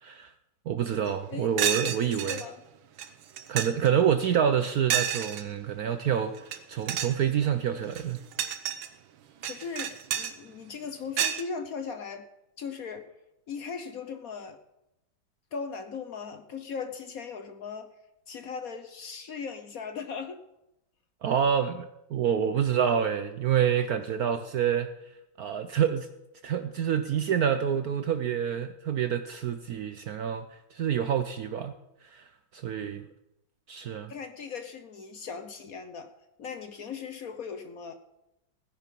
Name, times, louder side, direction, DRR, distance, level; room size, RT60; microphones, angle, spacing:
voice 1, 0.0-0.3 0.7-2.4 3.5-8.2 21.2-24.9 25.4-26.1 26.4-30.4 30.7-31.7 32.0-32.2 32.5-33.1 33.7-34.1, right 8 dB, 65° right, 10 dB, 0.9 m, -27 dB
sound 1, 1.1-1.2 1.6-2.4 3.0-3.1 3.4-3.9 4.9-5.4 6.4-6.6 6.9-7.2 7.8-8.9 9.4-10.3 11.2-11.4, right 10 dB, 85° right, 1.7 m, -29 dB
voice 2, 1.3-1.9 2.2-2.6 9.4-12.3 12.6-13.0 13.5-14.6 15.5-17.9 18.3-20.4 34.1-36.1 36.4-37.9, left 5 dB, 55° left, 8 dB, 1.2 m, -38 dB
16.0 x 10.0 x 5.4 m, 0.90 s
omnidirectional pair, 2.2 m